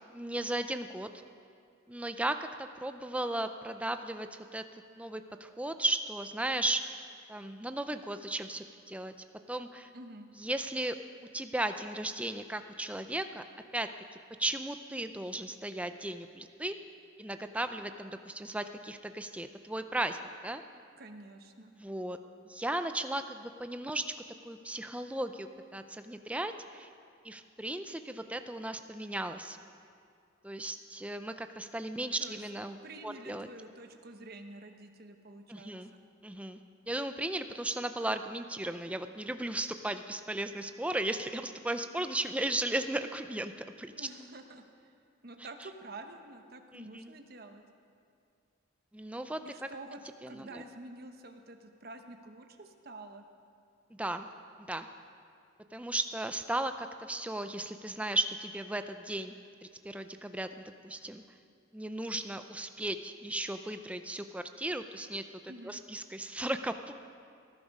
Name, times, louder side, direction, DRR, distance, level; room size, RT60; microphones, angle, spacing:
voice 1, 0.1-1.1 1.9-4.6 5.0-7.0 7.3-9.1 9.5-9.9 10.4-11.0 11.3-13.4 13.7-13.9 14.4-16.8 17.2-20.6 21.8-22.2 22.5-24.1 24.4-26.9 27.2-29.6 30.4-32.8 33.0-33.5 35.5-35.9 36.2-36.6 36.9-44.1 46.7-47.1 48.9-49.4 50.2-50.6 54.0-54.3 54.7-54.9 55.7-59.4 59.8-61.2 61.7-66.9, right 1 dB, 5° right, 8 dB, 0.5 m, -36 dB
voice 2, 9.9-10.3 21.0-21.7 32.2-32.4 32.8-36.0 43.9-44.9 45.2-47.6 49.4-53.2 65.5-65.8, right 2 dB, 50° right, 5 dB, 1.0 m, -48 dB
18.5 x 11.5 x 5.4 m, 2.3 s
head